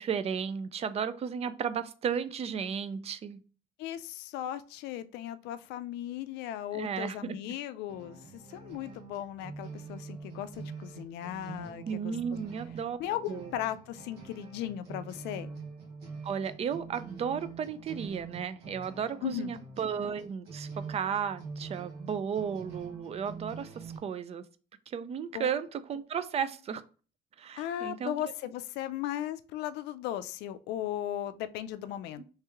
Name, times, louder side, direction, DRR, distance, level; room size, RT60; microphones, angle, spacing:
voice 1, 0.0-3.4 6.7-7.4 11.9-13.0 13.3-13.5 16.2-24.4 24.9-26.8 27.4-28.1 32.2-32.3, right 7 dB, 40° right, 14 dB, 0.4 m, -34 dB
voice 2, 3.8-12.1 13.0-15.5 19.2-19.5 25.3-25.5 27.6-32.2, left 12 dB, 90° left, 13 dB, 0.4 m, -37 dB
sound 1, 7.9-24.0, right 4 dB, 70° right, 1.3 m, -45 dB
3.2 x 3.0 x 3.5 m, 0.37 s
cardioid pair, 110°, 17 cm